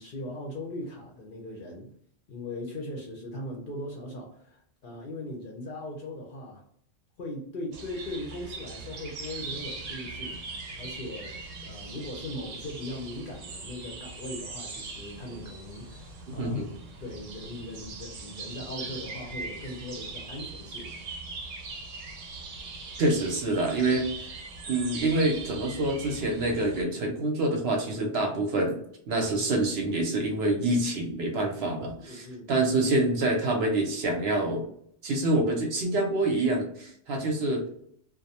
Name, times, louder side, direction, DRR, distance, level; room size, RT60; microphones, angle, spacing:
voice 1, 0.0-1.9 2.3-6.6 7.2-10.4 10.8-16.7 17.0-20.9 23.9-24.0 32.1-32.5, left 1 dB, 55° left, -1 dB, 0.6 m, -39 dB
sound 1, 7.7-26.8, right 3 dB, 85° right, 1.0 m, -41 dB
voice 2, 23.0-24.1 24.7-28.8 29.1-34.6 35.0-37.6, right 2 dB, 65° right, 2 dB, 0.8 m, -26 dB
2.4 x 2.0 x 2.7 m, 0.66 s
omnidirectional pair, 1.3 m